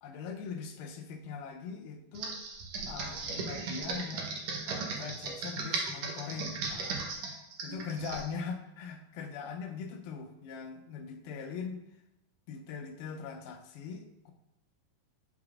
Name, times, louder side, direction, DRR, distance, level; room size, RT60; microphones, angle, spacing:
voice 1, 0.0-2.6 2.9-4.3 4.7-11.8 12.5-14.3, left 5 dB, 80° left, 4 dB, 2.3 m, -41 dB
Computer keyboard, 2.1-8.3, right 4 dB, 85° right, 1.5 m, -37 dB
9.6 x 5.1 x 2.4 m, 0.87 s
omnidirectional pair, 4.6 m